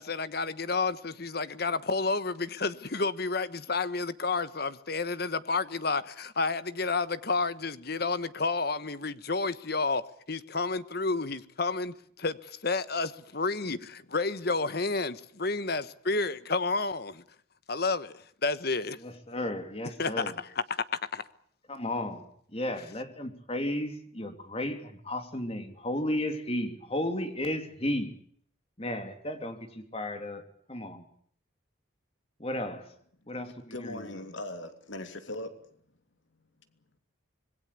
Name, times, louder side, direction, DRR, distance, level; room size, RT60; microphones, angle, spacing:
voice 1, 0.0-10.0 10.3-17.2 17.7-19.0 20.0-20.8 21.1-21.2, left 3 dB, 50° left, 1.3 m, -30 dB
voice 2, 19.0-20.4 21.7-28.1 28.8-30.4 30.7-31.0 32.4-32.9 33.3-34.1, left 1 dB, 30° left, 3.0 m, -34 dB
voice 3, 33.7-35.5, left 1 dB, 75° left, 2.9 m, -39 dB
26.0 x 21.5 x 8.5 m
head